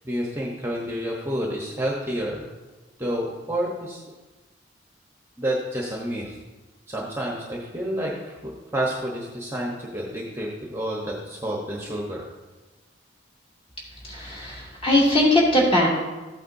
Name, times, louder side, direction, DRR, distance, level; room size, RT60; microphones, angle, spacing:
voice 1, 0.0-2.5 3.0-4.0 5.4-6.3 6.9-12.2, right 1 dB, 15° right, -2 dB, 1.0 m, -29 dB
voice 2, 14.1-15.9, left 1 dB, 30° left, -5 dB, 2.6 m, -20 dB
13.5 x 8.5 x 2.7 m, 1.2 s
head